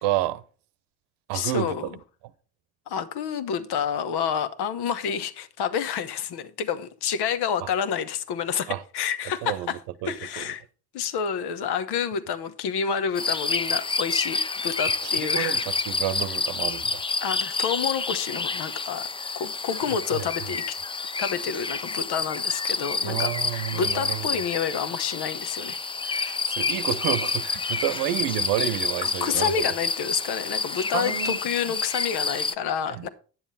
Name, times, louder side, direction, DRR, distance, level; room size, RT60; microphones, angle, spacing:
voice 1, 0.0-0.4 1.3-1.9 8.7-8.8 9.4-9.7 10.0-10.5 15.0-17.0 20.1-20.3 23.0-24.2 26.5-29.7 30.9-31.4 32.9-33.1, right 13 dB, 80° right, 0.9 m, -29 dB
voice 2, 1.3-2.0 2.9-9.8 10.0-10.6 10.9-15.7 17.2-19.1 19.3-20.8 21.2-26.4 27.7-28.0 29.0-33.1, left 7 dB, 65° left, 1.1 m, -29 dB
sound 1, 13.2-32.5, left 4 dB, 15° left, 0.4 m, -29 dB
9.9 x 7.3 x 4.1 m
supercardioid pair, 75°, 41 cm